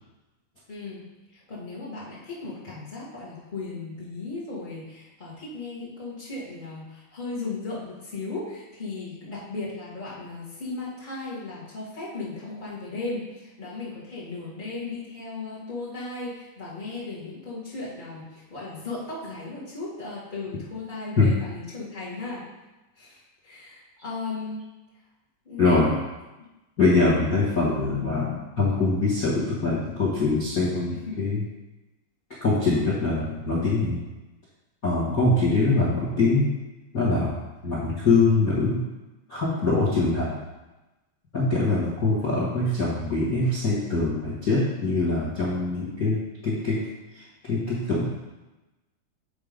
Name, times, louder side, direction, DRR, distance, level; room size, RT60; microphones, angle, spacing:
voice 1, 0.7-22.5 22.9-24.6 25.4-26.0 30.9-31.2, left 3 dB, 90° left, -9 dB, 0.4 m, -36 dB
voice 2, 25.6-25.9 26.8-31.4 32.4-34.0 34.8-36.5 36.9-37.4 37.6-38.8 39.3-40.4 41.3-46.8 47.1-48.1, left 3 dB, 70° left, -7 dB, 0.8 m, -23 dB
8.6 x 3.5 x 5.1 m, 1.1 s
omnidirectional pair, 4.0 m